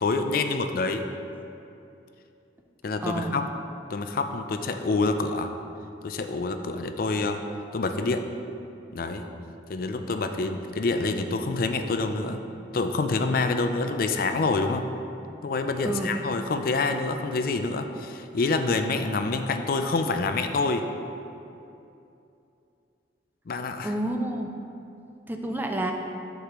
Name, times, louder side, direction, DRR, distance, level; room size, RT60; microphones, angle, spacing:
voice 1, 0.0-1.0 2.8-3.4 3.9-5.5 6.0-7.4 7.7-8.2 8.9-9.3 9.7-12.4 12.7-14.9 15.4-20.9 23.5-23.9, left 3 dB, 50° left, 7 dB, 0.4 m, -27 dB
voice 2, 3.0-3.4 15.8-16.2 23.8-24.5 25.3-25.9, right 1 dB, 10° right, 3 dB, 0.5 m, -29 dB
8.0 x 6.6 x 3.0 m, 2.7 s
head